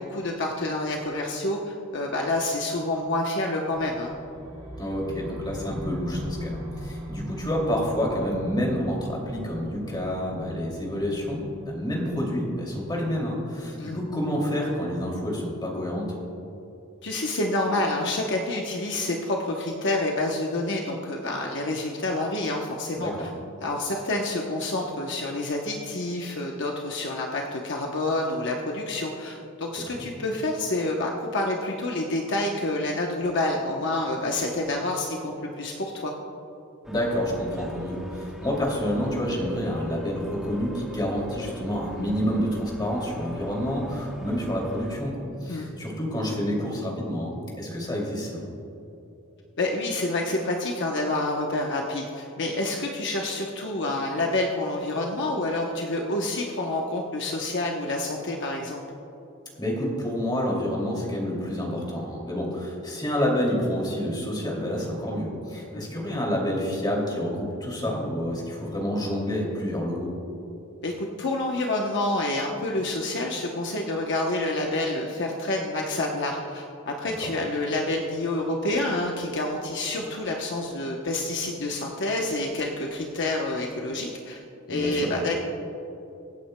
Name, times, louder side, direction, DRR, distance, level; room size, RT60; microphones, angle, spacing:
voice 1, 0.0-4.1 13.8-14.0 17.0-23.3 23.6-36.1 45.5-45.7 49.6-58.8 65.7-65.9 70.8-84.4 84.7-85.4, left 2 dB, 60° left, 0 dB, 0.9 m, -28 dB
sound 1, 3.7-13.8, equal, 85° right, 1.7 m, -39 dB
voice 2, 4.8-16.1 23.0-23.3 29.9-30.1 36.9-48.4 59.6-70.1 77.1-77.3 84.7-85.0, equal, 20° left, -2 dB, 2.5 m, -28 dB
sound 2, 36.8-45.0, equal, 5° right, 1.0 m, -40 dB
24.0 x 8.8 x 2.2 m, 2.8 s
head